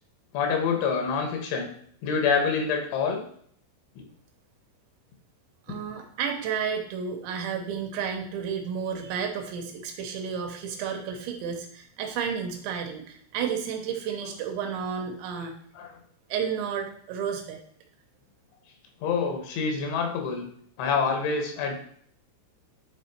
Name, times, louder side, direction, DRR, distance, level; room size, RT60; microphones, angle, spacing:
voice 1, 0.3-1.7 2.0-3.2 4.0-4.1 15.8-15.9 19.0-20.5 20.8-21.8, left 5 dB, 85° left, 3 dB, 3.8 m, -26 dB
voice 2, 5.7-15.6 16.3-17.6, right 7 dB, 80° right, 3 dB, 3.1 m, -32 dB
10.5 x 4.2 x 4.3 m, 0.62 s
omnidirectional pair, 5.4 m